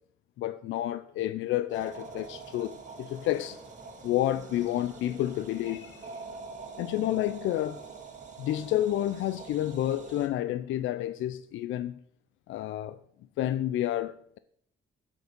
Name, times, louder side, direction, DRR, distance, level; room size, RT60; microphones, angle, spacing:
voice 1, 0.4-3.6 4.0-6.1 6.8-7.8 8.4-12.0 12.5-13.0 13.4-14.4, left 13 dB, 80° left, 0.4 m, -30 dB
sound 1, 1.7-10.3, right 4 dB, 40° right, 1.9 m, -45 dB
7.8 x 7.3 x 5.3 m
cardioid pair, 90°, 20 cm